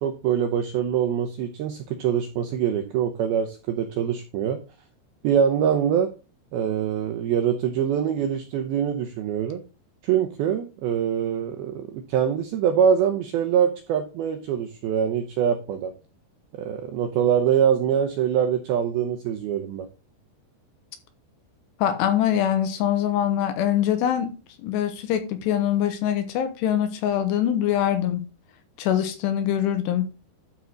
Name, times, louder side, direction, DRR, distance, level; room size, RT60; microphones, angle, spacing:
voice 1, 0.0-4.6 5.2-6.1 6.5-9.6 10.0-15.9 16.6-19.9, right 8 dB, 80° right, 2.2 m, -24 dB
voice 2, 21.8-24.3 24.6-28.3 28.8-30.1, left 10 dB, 75° left, 2.8 m, -23 dB
12.0 x 4.6 x 3.9 m
omnidirectional pair, 5.4 m